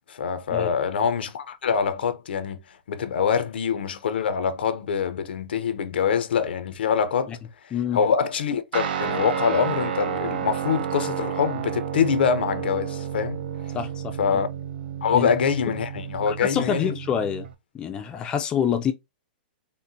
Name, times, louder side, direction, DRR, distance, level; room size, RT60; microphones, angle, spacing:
voice 1, 0.1-2.6 2.9-7.4 7.9-13.4 14.2-14.5 15.0-17.0, left 6 dB, 85° left, 0.5 m, -24 dB
voice 2, 7.7-8.0 13.7-14.1 15.1-15.3 16.3-17.5 17.7-18.9, left 8 dB, 15° left, 0.3 m, -26 dB
Guitar, 8.7-17.5, right 8 dB, 70° right, 0.5 m, -31 dB
3.8 x 2.0 x 2.6 m
hypercardioid pair, 160°, 5 cm